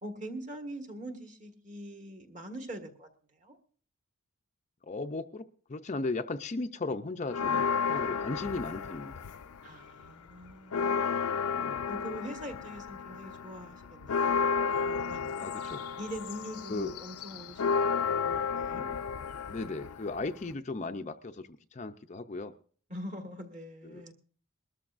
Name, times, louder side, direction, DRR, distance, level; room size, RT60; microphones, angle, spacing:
voice 1, 0.0-3.1 3.4-3.6 9.6-11.0 11.8-14.5 14.8-15.3 15.6-18.9 22.9-24.1, equal, 35° right, 4 dB, 1.6 m, -43 dB
voice 2, 4.8-5.4 5.7-9.1 11.5-11.8 15.4-15.8 16.7-17.0 19.5-22.5 23.8-24.1, left 3 dB, 30° left, 7 dB, 0.5 m, -36 dB
sound 1, 7.3-9.7 10.0-20.5, left 5 dB, 85° left, 0.5 m, -32 dB
22.0 x 13.0 x 2.5 m, 0.43 s
head